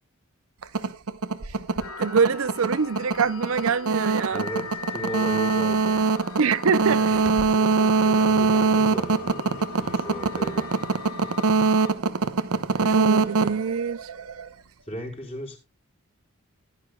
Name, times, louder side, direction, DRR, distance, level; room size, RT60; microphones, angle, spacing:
sound 1, 0.6-14.5, right 4 dB, 80° right, 0.9 m, -23 dB
sound 2, 1.8-11.9, left 5 dB, 70° left, 1.6 m, -39 dB
voice 1, 2.0-4.5 6.4-7.2 12.8-14.1, right 6 dB, 65° right, 0.6 m, -24 dB
voice 2, 4.3-6.0 6.8-10.7 14.9-15.6, equal, 25° left, 4.4 m, -36 dB
16.0 x 11.5 x 2.3 m
head